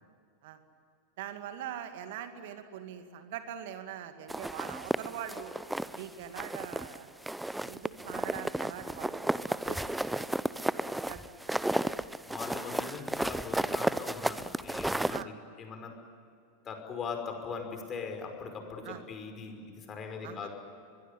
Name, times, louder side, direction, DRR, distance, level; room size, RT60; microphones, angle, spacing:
voice 1, 1.2-5.5 5.9-7.1 7.6-10.4 10.7-11.2 11.5-11.6 15.1-15.3 18.8-19.0 20.2-20.5, right 10 dB, 55° right, 8 dB, 2.3 m, -43 dB
sound 1, 4.3-6.0 6.4-7.0 7.2-15.2, right 1 dB, 5° right, 0.7 m, -33 dB
voice 2, 12.2-15.9 16.6-20.5, left 5 dB, 30° left, 4 dB, 5.6 m, -40 dB
23.0 x 22.5 x 9.9 m, 2.5 s
figure-of-eight pair, 90°, 0 cm